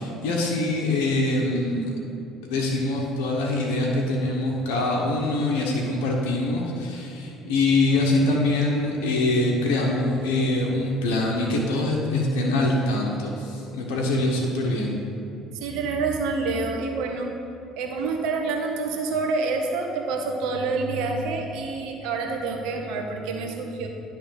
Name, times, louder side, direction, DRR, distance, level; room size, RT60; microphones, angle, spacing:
voice 1, 0.0-1.9 2.4-14.9, left 2 dB, 80° left, -2 dB, 1.0 m, -24 dB
voice 2, 15.5-17.3 17.8-23.9, right 3 dB, 70° right, 2 dB, 1.0 m, -27 dB
10.0 x 3.4 x 6.4 m, 2.6 s
hypercardioid pair, 65°, 0 cm